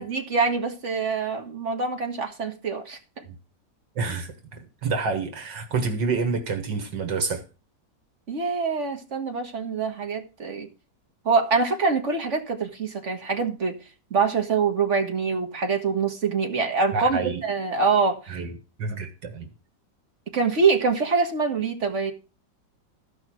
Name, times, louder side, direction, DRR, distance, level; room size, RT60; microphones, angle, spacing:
voice 1, 0.0-3.2 8.3-10.7 11.3-13.8 14.1-18.4 20.3-22.1, right 4 dB, 40° right, 1.7 m, -25 dB
voice 2, 4.0-7.4 16.9-17.4 18.3-18.5 18.8-19.5, right 4 dB, 70° right, 2.0 m, -28 dB
14.0 x 5.5 x 6.1 m
omnidirectional pair, 2.0 m